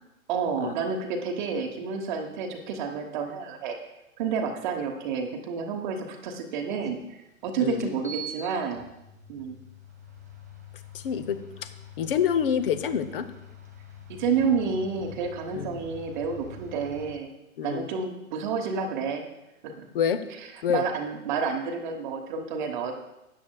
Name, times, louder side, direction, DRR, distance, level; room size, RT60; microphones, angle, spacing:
voice 1, 0.3-3.8 4.2-7.0 7.4-8.8 9.3-9.6 14.1-17.3 17.6-19.3 19.6-19.9 20.7-22.9, right 5 dB, 35° right, 4 dB, 1.0 m, -29 dB
sound 1, 6.8-6.9 7.7-17.1, left 1 dB, 15° right, 0.3 m, -45 dB
voice 2, 10.9-11.7 12.0-13.3 15.5-15.8 17.6-17.9 19.9-20.2 20.6-20.8, left 8 dB, 40° left, 11 dB, 0.7 m, -27 dB
13.0 x 9.4 x 2.3 m, 0.94 s
figure-of-eight pair, 120°, 42 cm